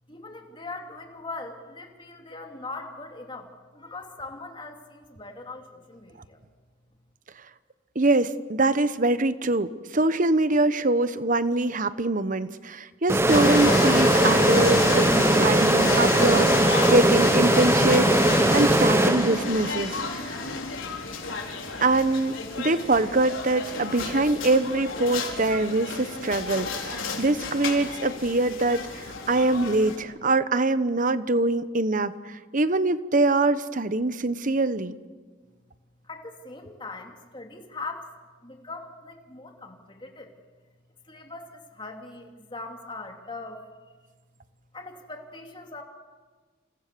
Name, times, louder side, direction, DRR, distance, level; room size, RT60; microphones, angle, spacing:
voice 1, 0.1-6.4 36.0-38.1 38.4-40.3 41.1-43.6 44.7-45.8, left 3 dB, 25° left, 3 dB, 2.8 m, -40 dB
voice 2, 7.9-15.1 15.4-20.0 21.8-32.1 32.5-35.0, right 2 dB, 40° right, 13 dB, 1.0 m, -24 dB
sound 1, 13.1-19.8, right 1 dB, 15° right, 0.8 m, -20 dB
sound 2, 13.3-30.0, left 4 dB, 75° left, 4.5 m, -31 dB
28.5 x 28.5 x 6.9 m, 1.4 s
head